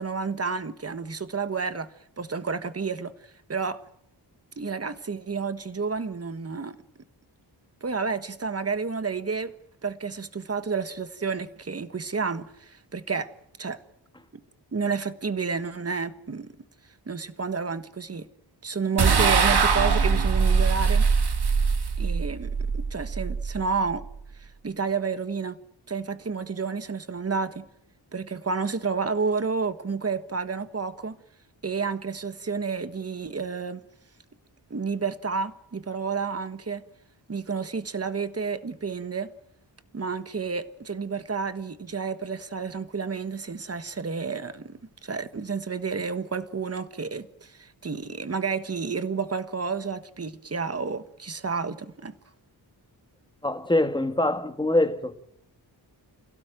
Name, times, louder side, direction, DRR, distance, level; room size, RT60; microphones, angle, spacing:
voice 1, 0.0-3.1 3.5-3.8 4.6-6.8 7.8-9.5 9.8-13.3 13.6-13.8 14.7-16.5 17.1-18.3 18.6-21.1 22.0-24.1 24.4-25.6 25.9-27.7 28.1-31.2 31.6-33.8 34.7-36.8 37.3-39.3 39.9-52.1, right 5 dB, 35° right, 1.4 m, -30 dB
sound 1, 19.0-24.3, right 5 dB, 65° right, 2.3 m, -23 dB
voice 2, 53.4-55.2, left 1 dB, 10° left, 1.7 m, -24 dB
28.5 x 16.5 x 9.2 m
wide cardioid pair, 150°, 43 cm